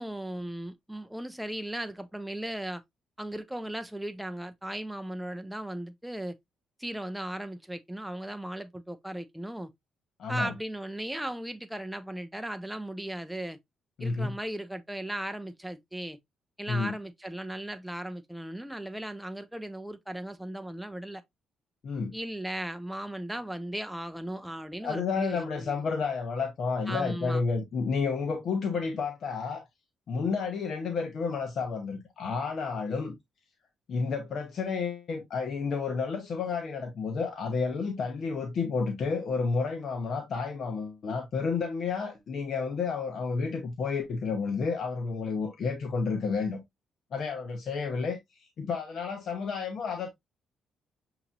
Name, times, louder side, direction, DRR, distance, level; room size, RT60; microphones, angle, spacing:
voice 1, 0.0-2.8 3.2-6.3 6.8-9.7 10.3-13.6 14.0-16.2 16.6-21.2 22.1-25.8 26.9-27.4, right 1 dB, 5° right, 0.4 m, -37 dB
voice 2, 10.2-10.5 14.0-14.3 16.7-16.9 21.8-22.1 24.8-29.6 30.1-33.1 33.9-46.6 47.1-48.2 48.6-50.1, left 4 dB, 60° left, 1.0 m, -31 dB
6.9 x 2.9 x 2.6 m
cardioid pair, 90°, 0 cm